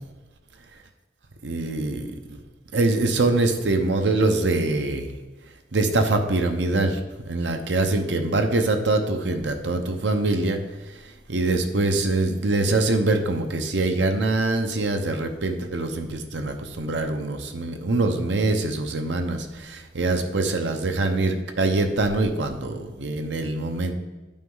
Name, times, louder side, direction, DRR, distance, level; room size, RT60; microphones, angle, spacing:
voice 1, 1.4-2.4 2.7-5.1 5.7-7.0 7.3-10.6 10.9-11.0 11.3-23.9, right 2 dB, 90° right, 6 dB, 0.8 m, -24 dB
8.8 x 5.3 x 3.9 m, 1.2 s
head